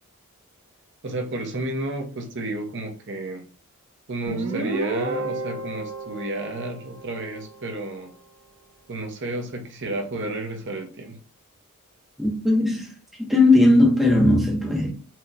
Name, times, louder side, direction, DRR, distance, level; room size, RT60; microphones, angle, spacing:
voice 1, 1.0-3.5 4.1-8.1 8.9-11.2, right 2 dB, 55° right, 0.8 m, -31 dB
Guitar, 4.3-7.7, right 2 dB, 75° right, 1.0 m, -32 dB
voice 2, 12.2-12.9 13.3-14.9, left 2 dB, ahead, 0.8 m, -18 dB
4.4 x 2.8 x 2.6 m
head